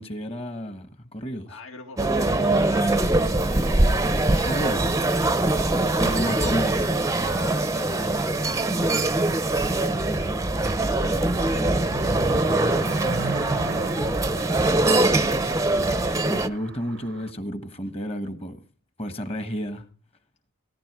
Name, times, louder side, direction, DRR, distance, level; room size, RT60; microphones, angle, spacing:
voice 1, 0.0-1.5 4.3-4.9 6.0-6.9 9.6-10.4 16.3-18.6 19.0-19.9, equal, 30° left, 1.3 m, -32 dB
voice 2, 1.5-4.0 5.4-9.0 10.8-14.1 14.5-16.0, left 3 dB, 75° left, 2.0 m, -44 dB
sound 1, 2.0-16.5, right 2 dB, 15° right, 0.6 m, -23 dB
Car passing by, 8.7-17.3, right 4 dB, 60° right, 0.6 m, -38 dB
17.5 x 11.0 x 4.8 m
head